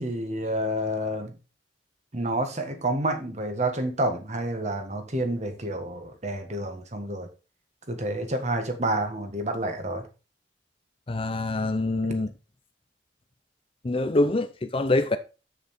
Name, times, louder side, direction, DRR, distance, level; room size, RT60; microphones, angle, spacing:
voice 1, 0.0-1.4 2.1-7.3 7.9-10.1, right 1 dB, 35° right, 1.5 m, -29 dB
voice 2, 11.1-12.3 13.8-15.2, left 2 dB, 30° left, 0.5 m, -25 dB
7.6 x 6.6 x 4.3 m
head